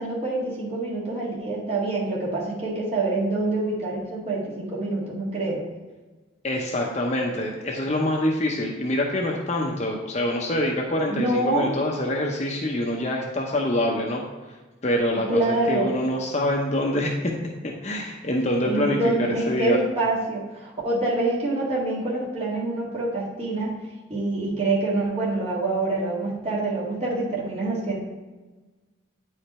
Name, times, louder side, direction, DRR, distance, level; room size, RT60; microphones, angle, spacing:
voice 1, 0.0-5.7 11.1-11.7 15.3-15.9 18.6-23.8 24.1-28.0, right 2 dB, 30° right, -6 dB, 1.9 m, -26 dB
voice 2, 6.4-14.2 14.8-17.3 17.6-19.1 19.5-19.8, left 1 dB, 35° left, 0 dB, 0.8 m, -25 dB
9.2 x 4.9 x 4.3 m, 1.2 s
head